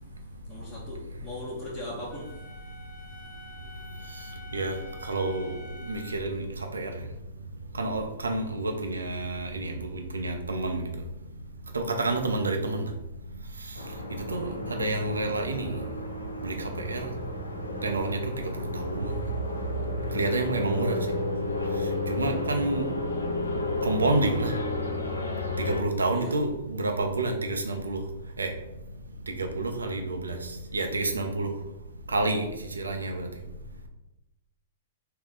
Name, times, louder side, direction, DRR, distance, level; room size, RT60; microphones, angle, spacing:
voice 1, 0.5-2.3 14.4-14.6 26.1-26.4, left 1 dB, 20° left, -9 dB, 1.0 m, -39 dB
Wind instrument woodwind instrument, 2.1-6.3, left 1 dB, 5° right, 0.8 m, -47 dB
voice 2, 5.1-5.6 5.8-6.4 6.7-6.9 7.8-10.8 11.7-12.9 14.3-15.8 16.4-17.1 17.8-18.2 18.7-19.2 20.1-21.0 22.1-22.8 23.8-24.5 25.7-28.0 28.4-28.5 29.3-30.3 30.7-31.5 32.1-32.5 32.8-33.3, right 2 dB, 85° right, 3 dB, 0.6 m, -29 dB
sound 1, 13.7-25.8, left 1 dB, 90° left, 0.5 m, -32 dB
3.6 x 2.2 x 3.7 m, 0.92 s
figure-of-eight pair, 110°, 0 cm